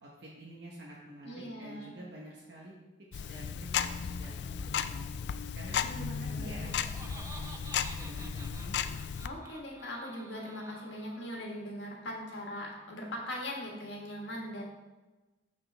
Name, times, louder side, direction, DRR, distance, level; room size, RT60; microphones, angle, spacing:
voice 1, 0.0-2.7 3.1-5.1 5.5-8.8, right 1 dB, 70° right, -4 dB, 0.9 m, -49 dB
voice 2, 1.2-1.9 5.8-6.8 9.2-14.6, equal, 90° left, -1 dB, 1.6 m, -41 dB
Tick-tock, 3.1-9.3, left 7 dB, 75° left, 0.3 m, -35 dB
Laughter, 6.3-11.5, right 3 dB, 15° right, 0.4 m, -51 dB
6.4 x 6.1 x 3.4 m, 1.2 s
head